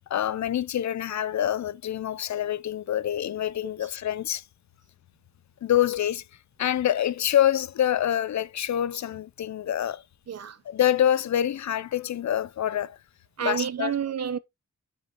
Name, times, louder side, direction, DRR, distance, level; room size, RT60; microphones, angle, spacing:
voice 1, 0.1-4.4 5.6-6.2 6.6-10.0 10.7-13.0 13.4-13.9, left 11 dB, 70° left, 0.6 m, -26 dB
voice 2, 10.3-10.6 13.4-14.4, right 8 dB, 60° right, 0.9 m, -29 dB
9.3 x 5.7 x 3.0 m
cardioid pair, 85°, 30 cm